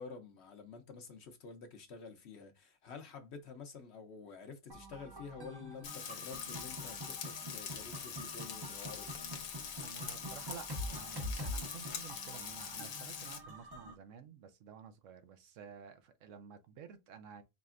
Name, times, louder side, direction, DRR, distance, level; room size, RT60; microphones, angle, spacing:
voice 1, 0.0-9.1, left 5 dB, 55° left, 0.9 m, -49 dB
sound 1, 4.7-13.9, equal, 25° right, 0.6 m, -45 dB
Frying (food), 5.8-13.4, left 7 dB, 90° left, 1.3 m, -44 dB
voice 2, 9.7-17.4, right 7 dB, 65° right, 1.0 m, -52 dB
5.0 x 3.2 x 2.4 m
omnidirectional pair, 1.5 m